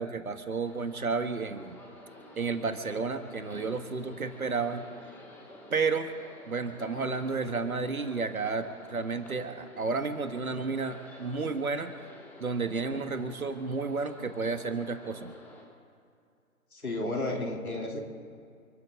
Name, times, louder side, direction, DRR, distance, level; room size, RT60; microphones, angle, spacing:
voice 1, 0.0-1.8 2.4-4.9 5.7-6.1 6.5-11.9 12.4-15.3, right 4 dB, 70° right, 8 dB, 1.8 m, -31 dB
sound 1, 0.6-15.6, left 1 dB, 5° left, 1.1 m, -51 dB
voice 2, 16.7-18.0, left 2 dB, 75° left, 0 dB, 3.3 m, -32 dB
29.5 x 12.0 x 3.8 m, 2.4 s
figure-of-eight pair, 140°, 44 cm